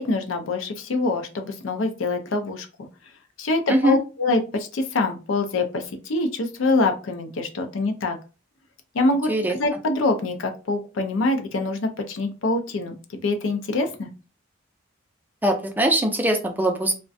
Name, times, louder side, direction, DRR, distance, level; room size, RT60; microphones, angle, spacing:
voice 1, 0.0-2.7 3.4-8.2 8.9-14.1, left 2 dB, 75° left, 6 dB, 0.5 m, -25 dB
voice 2, 15.4-17.0, right 1 dB, 10° right, 3 dB, 0.3 m, -21 dB
2.4 x 2.1 x 2.5 m, 0.33 s
head